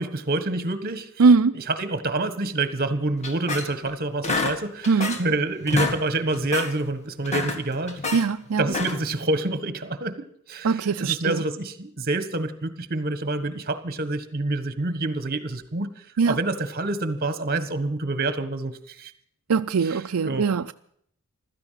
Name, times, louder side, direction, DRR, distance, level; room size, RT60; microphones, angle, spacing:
voice 1, 0.0-1.1 1.5-8.1 8.6-15.9 16.3-19.1 19.8-20.5, right 2 dB, 45° right, 1.5 m, -27 dB
voice 2, 1.2-1.5 4.9-5.2 8.1-8.6 10.6-11.4 16.2-16.4 19.5-20.7, right 4 dB, 90° right, 0.5 m, -21 dB
sound 1, 3.2-3.9 4.2-5.3 5.6-6.0 6.3-6.7 7.1-8.2 8.6-9.1, left 3 dB, 35° left, 1.9 m, -28 dB
15.5 x 13.5 x 5.8 m
head